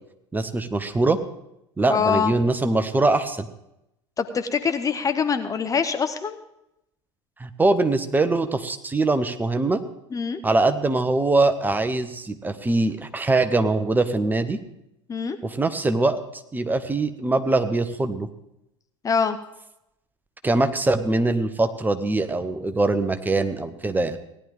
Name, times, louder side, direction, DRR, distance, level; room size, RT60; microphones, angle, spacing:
voice 1, 0.3-1.2 1.8-3.5 7.4-9.8 10.4-14.6 15.4-16.2 16.5-18.3 20.4-24.2, right 2 dB, 10° right, 9 dB, 1.0 m, -22 dB
voice 2, 1.8-2.3 4.2-6.4 10.1-10.4 15.1-15.4 19.0-19.4, left 6 dB, 20° left, 9 dB, 0.8 m, -24 dB
17.5 x 11.0 x 3.6 m, 0.83 s
figure-of-eight pair, 75°, 15 cm